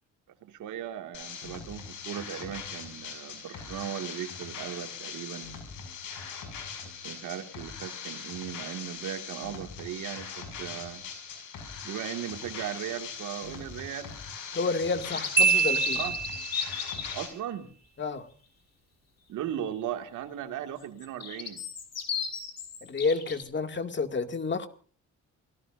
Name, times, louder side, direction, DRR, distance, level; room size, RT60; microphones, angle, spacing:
voice 1, 0.4-5.5 6.8-11.0 11.8-14.1 15.1-15.2 15.9-16.1 17.1-17.7 19.3-21.6, right 10 dB, 80° right, 6 dB, 2.2 m, -37 dB
sound 1, 1.1-17.3, left 6 dB, 80° left, 6.5 m, -41 dB
voice 2, 14.5-16.0 18.0-18.3 22.9-24.7, left 4 dB, 40° left, 7 dB, 2.2 m, -30 dB
sound 2, 14.8-17.2 20.8-23.4, left 6 dB, 55° left, 4.2 m, -35 dB
Marimba xylophone, 15.4-16.8, right 5 dB, 35° right, 1.6 m, -25 dB
28.5 x 17.5 x 2.6 m, 0.43 s
cardioid pair, 90°, 30 cm